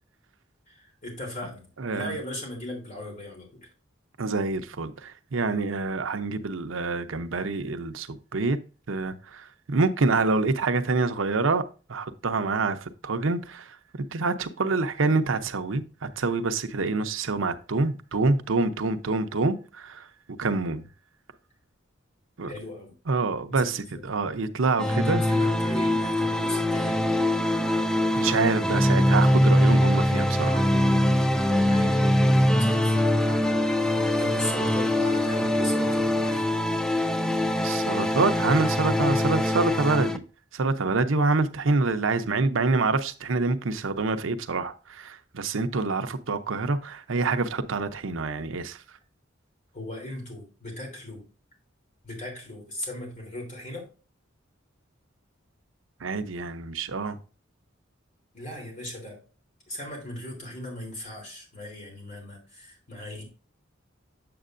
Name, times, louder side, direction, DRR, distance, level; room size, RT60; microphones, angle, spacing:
voice 1, 0.7-3.6 22.5-22.9 23.5-24.1 24.8-27.0 31.7-32.1 32.5-33.1 34.2-36.5 49.7-51.2 52.0-53.9 58.3-59.2 59.7-63.2, left 1 dB, 40° left, 3.4 m, -38 dB
voice 2, 1.8-2.2 4.2-8.6 8.9-11.6 11.9-13.8 14.1-20.1 20.4-20.8 22.4-22.5 23.1-25.2 28.1-30.6 33.2-33.5 37.6-40.2 40.5-48.8 56.0-57.2, right 3 dB, 85° right, 0.7 m, -26 dB
sound 1, 24.8-40.2, left 1 dB, 5° left, 0.4 m, -23 dB
7.8 x 7.4 x 2.5 m
head